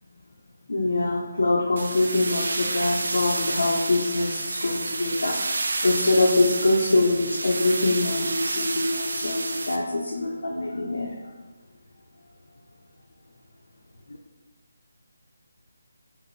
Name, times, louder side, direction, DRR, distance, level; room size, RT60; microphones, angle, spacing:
voice 1, 0.7-11.1, left 2 dB, 80° left, -4 dB, 0.6 m, -24 dB
sound 1, 1.8-9.8, right 3 dB, 55° right, 0.4 m, -30 dB
5.0 x 2.6 x 3.2 m, 1.3 s
hypercardioid pair, 175°, 0 cm